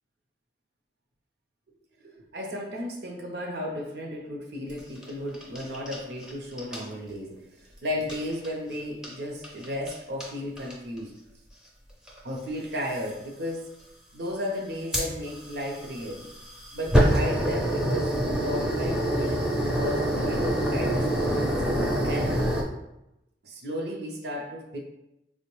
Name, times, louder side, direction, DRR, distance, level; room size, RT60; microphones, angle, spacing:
voice 1, 2.0-11.1 12.2-13.7 14.1-16.3 16.7-22.4 23.4-24.8, left 1 dB, 65° right, 1 dB, 0.6 m, -34 dB
sound 1, 4.7-6.3 6.6-6.8 8.0-8.5 9.0-9.2 9.4-9.9 10.2-10.3 10.6-11.0 12.1-12.2 12.9-13.1 14.9-22.6, right 1 dB, 5° right, 0.4 m, -26 dB
4.5 x 2.1 x 2.9 m, 0.89 s
head